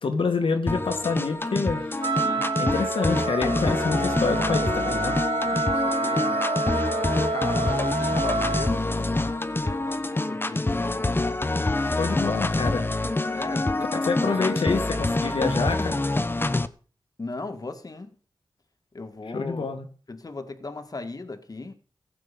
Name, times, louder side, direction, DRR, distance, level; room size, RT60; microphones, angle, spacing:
voice 1, 0.0-1.8 2.6-5.2 11.6-13.2 14.0-16.0 19.3-19.8, left 4 dB, 85° left, 2.1 m, -27 dB
sound 1, 0.7-16.7, left 2 dB, 25° left, 1.1 m, -26 dB
Wind instrument woodwind instrument, 2.0-8.8, right 3 dB, 80° right, 1.3 m, -28 dB
voice 2, 2.2-2.5 5.4-6.4 7.3-11.3 11.9-12.2 12.4-12.8 13.3-14.8 17.2-18.1 18.9-19.7 20.1-21.7, left 3 dB, 45° left, 1.9 m, -38 dB
16.0 x 8.2 x 5.4 m
wide cardioid pair, 70°, 9 cm